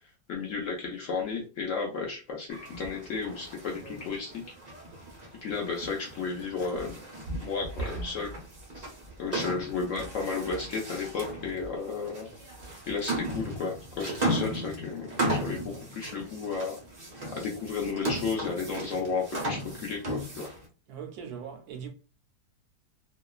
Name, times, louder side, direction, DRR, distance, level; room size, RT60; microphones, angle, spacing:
voice 1, 0.3-4.4 5.4-7.0 7.4-8.3 8.7-8.9 9.2-12.3 12.9-16.8 17.3-20.5, left 4 dB, 65° left, 0.8 m, -33 dB
sound 1, 2.5-20.7, right 1 dB, 50° right, 0.5 m, -36 dB
voice 2, 20.9-21.9, right 7 dB, 75° right, 1.1 m, -40 dB
2.9 x 2.2 x 2.3 m
omnidirectional pair, 1.8 m